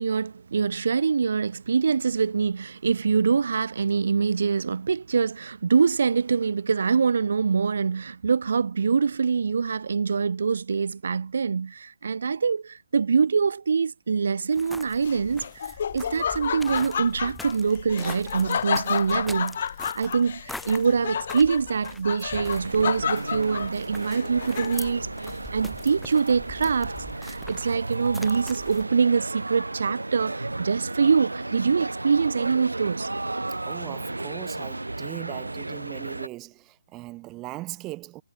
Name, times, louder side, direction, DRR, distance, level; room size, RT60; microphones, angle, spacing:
voice 1, 0.0-19.6 19.9-25.1 25.5-33.1, right 5 dB, 55° right, 1.5 m, -24 dB
sound 1, 14.5-28.8, left 2 dB, ahead, 2.2 m, -44 dB
Laughter, 15.0-25.0, left 7 dB, 45° left, 2.1 m, -31 dB
sound 2, 22.3-36.3, right 2 dB, 75° right, 1.5 m, -34 dB
voice 2, 33.7-38.2, right 19 dB, 15° right, 1.0 m, -39 dB
figure-of-eight pair, 140°, 0 cm